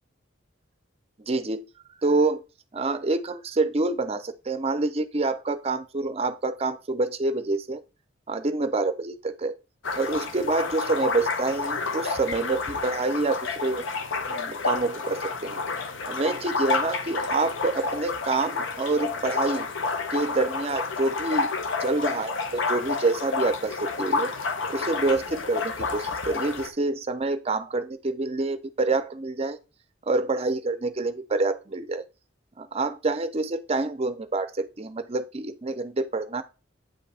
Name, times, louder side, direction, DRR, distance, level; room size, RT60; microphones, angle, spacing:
voice 1, 1.2-1.7 2.0-2.4 2.7-7.8 8.3-9.5 10.0-13.9 14.3-15.6 16.1-19.7 20.1-21.5 21.8-24.3 24.7-29.6 30.0-32.0 32.6-36.4, right 3 dB, 30° right, 12 dB, 0.6 m, -27 dB
sound 1, 9.8-26.7, left 4 dB, 75° left, 0.8 m, -30 dB
8.9 x 5.2 x 3.4 m, 0.31 s
head